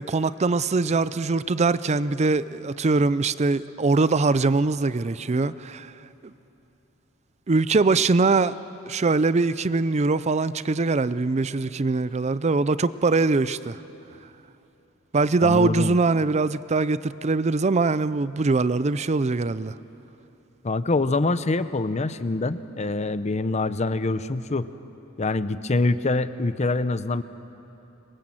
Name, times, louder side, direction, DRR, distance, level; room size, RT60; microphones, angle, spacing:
voice 1, 0.0-5.9 7.5-8.6 8.9-13.8 15.1-19.7, right 3 dB, 35° right, 0.5 m, -22 dB
voice 2, 15.4-16.0 20.6-24.7 25.2-27.2, left 2 dB, 35° left, 0.7 m, -25 dB
26.0 x 22.5 x 7.7 m
head